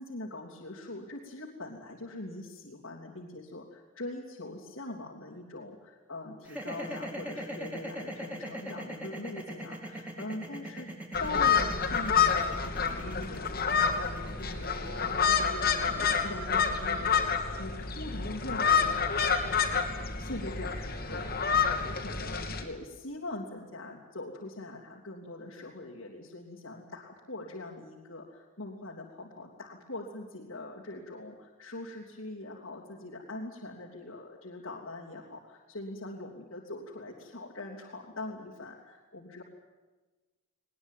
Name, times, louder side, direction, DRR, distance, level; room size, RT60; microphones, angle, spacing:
voice 1, 0.0-10.9 11.2-19.8 20.2-39.4, left 2 dB, 85° left, -4 dB, 3.3 m, -42 dB
sound 1, 6.4-16.6, right 1 dB, 5° right, 3.9 m, -40 dB
sound 2, 11.1-22.6, left 6 dB, 45° left, 2.8 m, -28 dB
21.0 x 20.5 x 9.4 m, 1.2 s
head